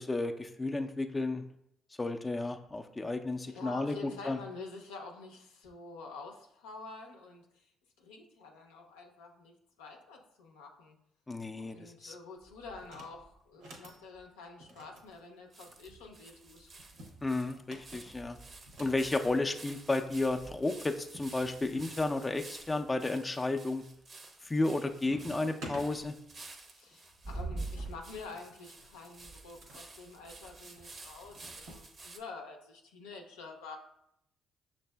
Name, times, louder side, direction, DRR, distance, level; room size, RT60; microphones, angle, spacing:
voice 1, 0.0-1.4 2.0-4.4 11.3-12.1 17.2-18.4 18.8-23.8 24.4-26.1, left 2 dB, 25° left, 5 dB, 0.4 m, -32 dB
voice 2, 3.4-7.7 8.0-9.5 9.8-11.0 11.5-16.7 26.7-33.8, left 4 dB, 85° left, 1 dB, 0.5 m, -48 dB
sound 1, 12.4-13.4 13.9-14.0 14.2-14.3 15.1-15.2 15.5-32.2, right 3 dB, 45° right, 0.6 m, -48 dB
sound 2, 12.8-13.2 13.5-14.0 14.6-16.0 16.8-19.1 20.2-20.3 20.4-20.6 21.1-21.9 22.5-23.0 23.5-23.9 24.2-24.7 24.9-25.9 26.9-29.8 30.8-31.8, equal, 75° right, 0.8 m, -51 dB
6.3 x 2.6 x 2.2 m, 0.76 s
hypercardioid pair, 55°, 0 cm